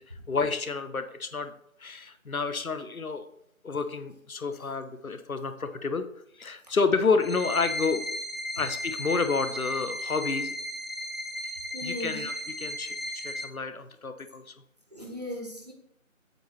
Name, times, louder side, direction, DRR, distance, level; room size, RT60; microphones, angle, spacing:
voice 1, 0.0-1.5 1.8-3.3 3.6-6.1 6.3-8.0 8.5-10.6 11.8-14.5, left 4 dB, 80° left, 10 dB, 0.9 m, -30 dB
sound 1, 7.2-13.4, left 1 dB, ahead, 0.4 m, -35 dB
voice 2, 11.7-12.2 14.9-15.7, left 1 dB, 30° right, 2 dB, 1.0 m, -37 dB
7.9 x 3.1 x 6.2 m, 0.72 s
figure-of-eight pair, 165°, 42 cm